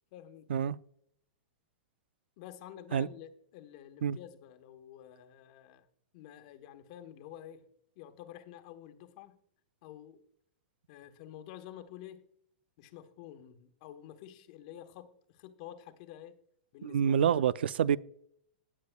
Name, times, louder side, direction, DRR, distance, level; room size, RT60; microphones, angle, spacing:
voice 1, 0.1-0.5 2.4-5.9 6.1-7.7 8.0-9.4 9.8-10.2 10.9-12.3 12.8-16.4 16.7-17.2, left 11 dB, 45° left, 1.1 m, -49 dB
voice 2, 16.8-18.0, right 8 dB, 85° right, 0.5 m, -27 dB
18.0 x 8.5 x 2.3 m
supercardioid pair, 160°, 5 cm